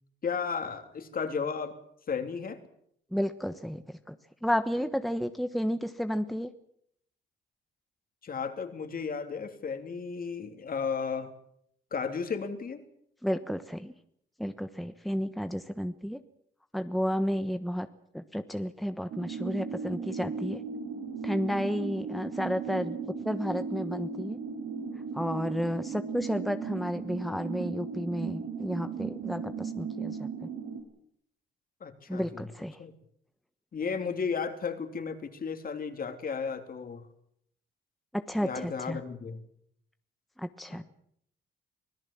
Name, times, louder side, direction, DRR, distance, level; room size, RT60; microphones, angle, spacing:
voice 1, 0.2-1.7 2.1-2.6 8.2-11.3 11.9-12.8 31.8-32.5 32.8-32.9 33.7-37.1 38.4-39.4 40.7-40.8, left 5 dB, 45° left, 7 dB, 3.2 m, -34 dB
voice 2, 3.1-4.1 4.4-6.5 13.2-13.9 14.4-16.2 16.7-17.9 18.1-20.6 21.2-23.0 23.2-24.4 25.1-30.5 32.1-32.8 38.1-39.0 40.4-40.8, equal, ahead, 9 dB, 1.2 m, -32 dB
sound 1, 19.1-30.8, right 5 dB, 70° right, 6.1 m, -37 dB
25.5 x 17.0 x 7.4 m, 0.70 s
cardioid pair, 90°, 20 cm